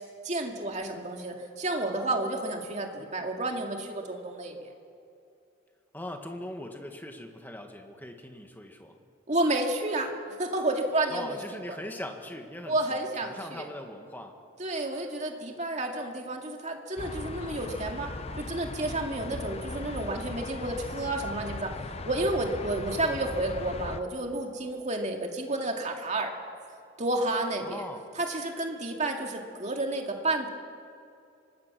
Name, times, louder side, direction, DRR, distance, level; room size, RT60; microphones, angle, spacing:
voice 1, 0.2-4.7 9.3-10.1 10.4-11.4 11.7-11.8 12.7-13.7 14.6-18.1 18.4-21.7 22.1-26.3 27.0-27.8 28.2-30.5, right 2 dB, 35° right, 2 dB, 2.3 m, -30 dB
voice 2, 5.9-8.9 11.1-14.4 27.6-28.1, left 1 dB, 10° left, 4 dB, 1.7 m, -40 dB
sound 1, 17.0-24.0, left 2 dB, 30° left, 0.7 m, -38 dB
25.0 x 19.5 x 6.2 m, 2.5 s
head